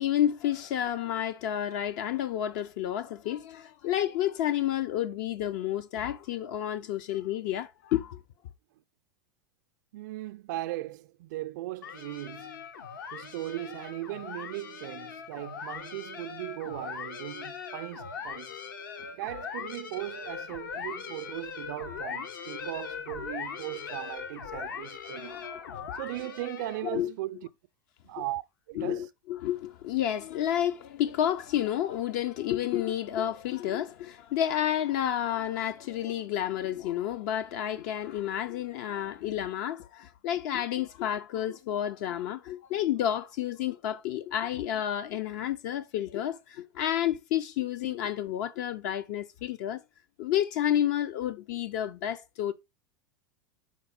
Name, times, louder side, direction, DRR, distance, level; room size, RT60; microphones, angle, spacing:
voice 1, 0.0-8.2 25.1-26.0 26.8-27.1 28.7-49.8 50.2-52.5, left 11 dB, 55° left, 0.6 m, -30 dB
voice 2, 9.9-12.6 13.1-18.5 19.0-25.4 25.9-27.5 28.0-28.4 28.7-29.1 47.8-47.9, right 16 dB, 60° right, 0.5 m, -38 dB
sound 1, 11.8-27.0, left 6 dB, 70° left, 1.0 m, -40 dB
5.4 x 4.1 x 4.9 m
figure-of-eight pair, 90°, 11 cm